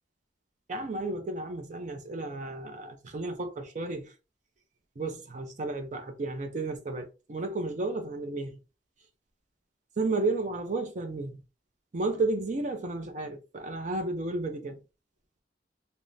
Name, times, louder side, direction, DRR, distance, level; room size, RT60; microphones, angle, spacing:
voice 1, 0.7-4.1 5.0-8.6 10.0-11.4 11.9-14.8, right 2 dB, 45° right, 0.5 m, -32 dB
3.5 x 2.1 x 2.6 m
head